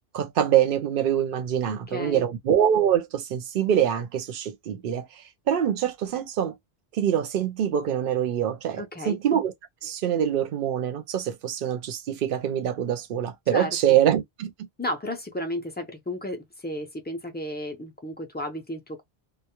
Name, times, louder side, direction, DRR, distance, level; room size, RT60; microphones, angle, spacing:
voice 1, 0.1-6.6 6.9-9.5 9.8-14.5, right 10 dB, 60° right, 0.7 m, -24 dB
voice 2, 1.7-2.3 8.8-9.2 13.5-14.0 14.8-19.0, left 1 dB, 15° left, 0.4 m, -33 dB
2.3 x 2.0 x 2.8 m
omnidirectional pair, 1.1 m